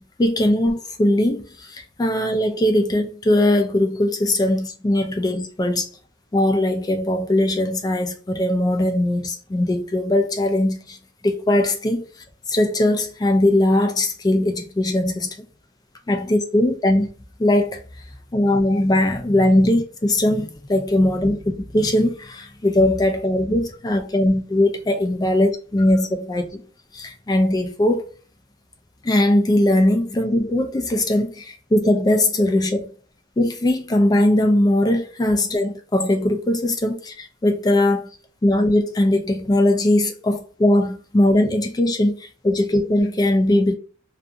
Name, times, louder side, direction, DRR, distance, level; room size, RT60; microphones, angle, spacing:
voice 1, 0.2-5.9 6.3-11.0 11.2-12.1 12.5-15.4 16.1-17.1 17.4-17.8 18.3-26.5 26.9-28.1 29.0-32.9 33.4-38.1 38.4-43.7, left 1 dB, 20° left, 0.3 m, -20 dB
2.4 x 2.4 x 2.6 m
head